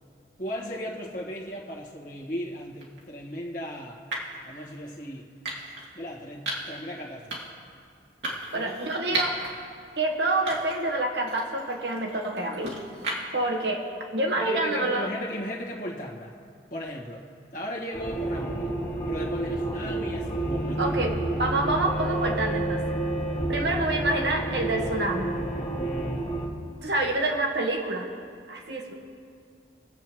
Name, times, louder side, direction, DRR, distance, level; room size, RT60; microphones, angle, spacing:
voice 1, 0.4-4.0 4.4-5.3 5.9-7.4 8.5-9.3 14.3-16.3 16.7-17.2 17.5-18.8 19.0-21.0, equal, 50° left, -2 dB, 1.6 m, -36 dB
sound 1, 2.8-3.0 4.1-4.4 5.4-5.9 6.5-6.8 7.3-7.6 8.2-9.5 9.9-10.0 10.5-10.9 11.3-13.5, right 2 dB, 85° right, 2.4 m, -34 dB
voice 2, 8.5-9.3 10.0-12.8 13.3-13.8 14.1-15.1 20.8-22.8 23.5-25.4 26.8-28.1 28.5-28.9, right 2 dB, 70° right, 1 dB, 1.4 m, -27 dB
sound 2, 17.9-26.5, right 1 dB, 30° left, 1.7 m, -29 dB
24.0 x 8.2 x 3.0 m, 2.3 s
head